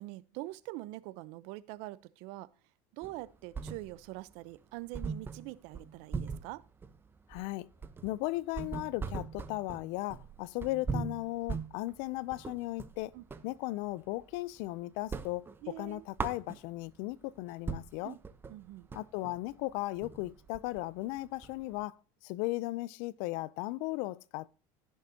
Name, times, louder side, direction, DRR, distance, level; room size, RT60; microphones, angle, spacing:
voice 1, 0.0-2.5 2.9-6.6 13.1-13.2 15.6-16.1 18.0-18.2 18.5-18.9, right 18 dB, 70° right, 0.8 m, -44 dB
sound 1, 3.0-4.2 4.5-4.6 4.9-13.5 13.9-14.7 15.0-17.0 17.4-17.5 17.7-21.8, right 5 dB, 20° right, 0.9 m, -40 dB
voice 2, 7.3-7.7 8.0-13.1 13.4-18.2 18.9-22.0 22.2-24.5, left 19 dB, 75° left, 0.6 m, -36 dB
16.0 x 6.6 x 2.9 m
supercardioid pair, 120°, 11 cm